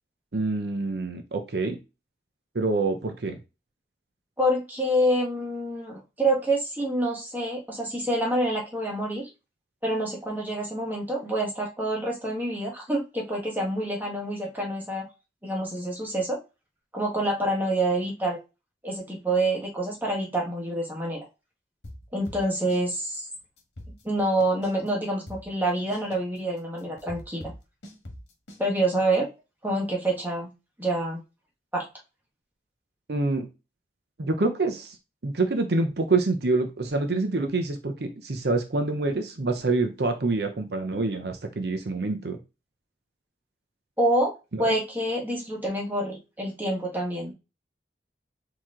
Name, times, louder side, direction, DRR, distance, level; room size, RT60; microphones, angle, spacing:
voice 1, 0.3-1.8 2.5-3.4 33.1-33.5 34.2-35.0 35.2-42.4 44.5-44.7, right 3 dB, 65° right, 6 dB, 0.7 m, -26 dB
voice 2, 4.4-9.3 9.8-15.0 15.4-16.4 16.9-18.4 18.8-21.2 22.1-23.3 24.0-27.5 28.6-29.3 29.6-30.5 30.8-31.2 31.7-31.8 44.0-44.3 44.6-47.3, right 1 dB, 10° right, -1 dB, 1.3 m, -27 dB
sound 1, 21.8-22.8 23.1-23.2 23.6-24.9 25.3-28.6, left 1 dB, 75° left, 1.5 m, -43 dB
4.5 x 2.9 x 3.7 m, 0.28 s
head